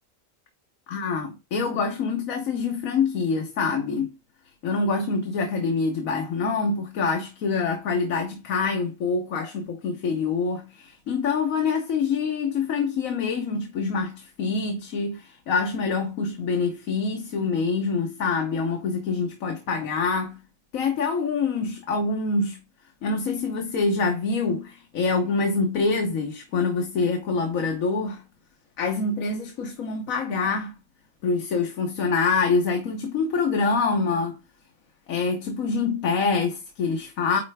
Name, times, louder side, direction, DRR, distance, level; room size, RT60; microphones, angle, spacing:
voice 1, 0.9-4.1 4.6-20.4 20.7-22.6 23.0-28.2 28.8-30.7 31.2-34.4 35.1-37.4, left 4 dB, 90° left, 1.4 m, -25 dB
9.4 x 3.3 x 3.4 m
omnidirectional pair, 1.4 m